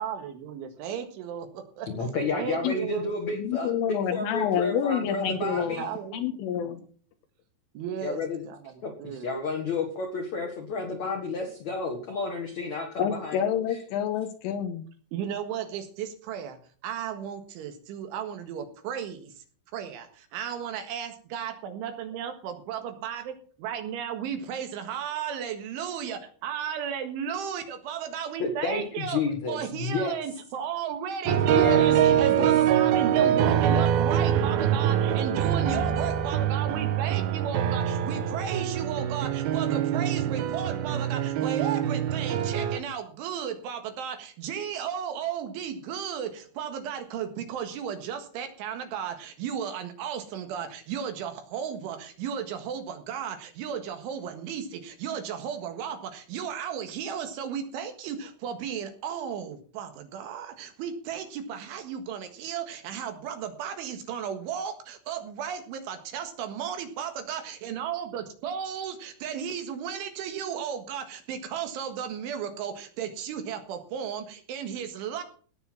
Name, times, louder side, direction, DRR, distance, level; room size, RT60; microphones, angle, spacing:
voice 1, 0.0-1.9 2.3-3.1 5.4-6.2 7.8-8.7 9.0-9.3 15.1-19.3 19.7-23.3 23.6-29.2 29.5-75.2, right 8 dB, 70° right, 7 dB, 3.8 m, -34 dB
voice 2, 1.9-5.8 8.0-8.4 8.8-13.4 28.4-30.2 31.2-32.5 32.9-33.9, left 3 dB, 55° left, 2 dB, 2.0 m, -31 dB
voice 3, 3.3-5.9 6.1-6.8 13.0-14.9, left 8 dB, 80° left, 7 dB, 3.5 m, -28 dB
sound 1, 31.3-42.8, right 10 dB, 90° right, 2.1 m, -24 dB
17.5 x 7.0 x 6.0 m, 0.43 s
omnidirectional pair, 6.0 m